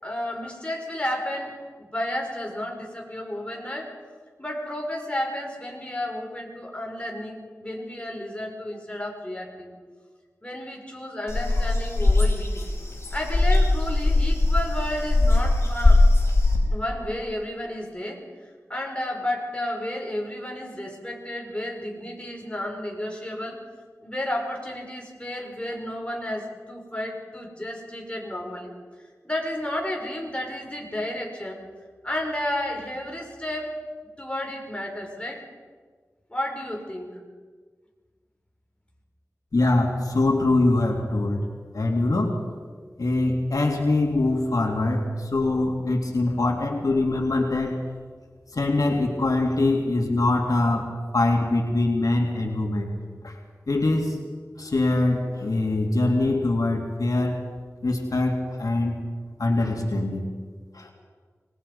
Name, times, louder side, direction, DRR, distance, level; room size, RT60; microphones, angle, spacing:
voice 1, 0.0-3.9 4.4-9.7 10.4-12.7 13.1-16.1 16.7-23.6 24.0-28.7 29.2-31.6 32.0-33.8 34.2-35.4 36.3-37.1, left 1 dB, 20° left, 0 dB, 5.3 m, -32 dB
sound 1, 11.3-16.6, left 2 dB, 45° left, 5.6 m, -20 dB
voice 2, 39.5-41.5 41.7-42.4 43.0-47.8 48.5-52.9 53.2-53.4 53.7-54.2 54.6-57.4 57.8-59.0 59.4-60.3 60.7-60.9, left 2 dB, 80° left, 1 dB, 2.6 m, -23 dB
25.0 x 20.5 x 5.5 m, 1.5 s
wide cardioid pair, 55°, 6 cm